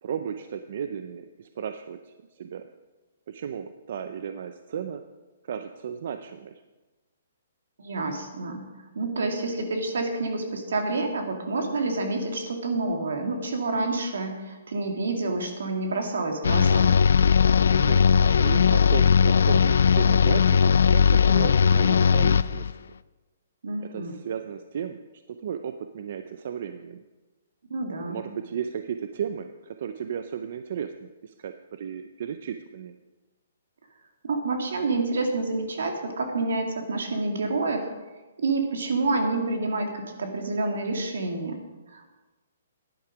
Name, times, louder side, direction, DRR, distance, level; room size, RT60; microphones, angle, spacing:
voice 1, 0.0-2.7 3.3-5.0 5.5-6.5 17.7-22.8 23.9-25.0 25.3-27.0 28.0-32.9, right 8 dB, 40° right, 9 dB, 0.5 m, -35 dB
voice 2, 7.8-8.6 8.9-16.9 23.6-24.1 27.7-28.2 34.2-37.9 38.4-41.6 41.9-42.1, right 3 dB, 70° right, 4 dB, 2.2 m, -28 dB
sound 1, 16.4-22.7, left 6 dB, 70° left, 0.4 m, -19 dB
11.5 x 10.0 x 4.9 m, 1.2 s
hypercardioid pair, 175°, 0 cm